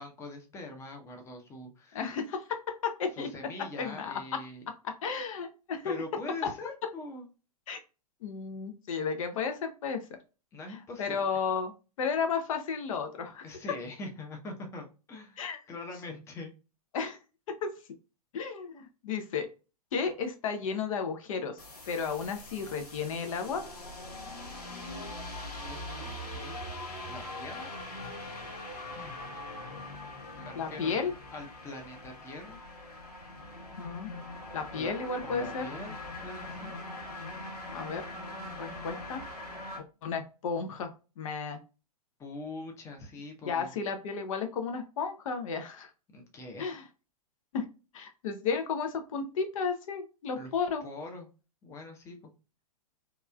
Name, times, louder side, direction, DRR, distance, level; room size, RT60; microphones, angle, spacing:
voice 1, 0.0-2.1 3.2-4.7 5.8-7.3 10.5-11.2 13.4-16.5 25.4-26.6 27.1-27.7 29.0-29.2 30.4-30.9 31.3-32.6 34.7-34.9 35.2-36.8 42.2-43.7 46.1-46.7 50.4-50.5 50.8-51.3 51.6-52.3, left 2 dB, 15° left, 2 dB, 0.6 m, -43 dB
voice 2, 1.9-2.4 2.8-3.3 3.8-4.4 4.8-5.9 6.4-6.5 7.7-7.8 8.2-10.0 11.0-11.7 12.0-13.4 15.4-15.6 16.9-17.2 17.6-17.7 18.3-19.5 19.9-21.6 21.9-23.6 30.5-31.1 33.8-34.1 34.5-35.7 37.7-38.0 38.6-39.2 40.0-41.6 43.4-45.9 46.6-46.8 47.5-47.7 47.9-50.8, left 5 dB, 55° left, 6 dB, 0.6 m, -33 dB
sound 1, 21.6-39.8, left 2 dB, 90° left, 1.1 m, -42 dB
2.9 x 2.3 x 2.2 m, 0.32 s
hypercardioid pair, 115°, 20 cm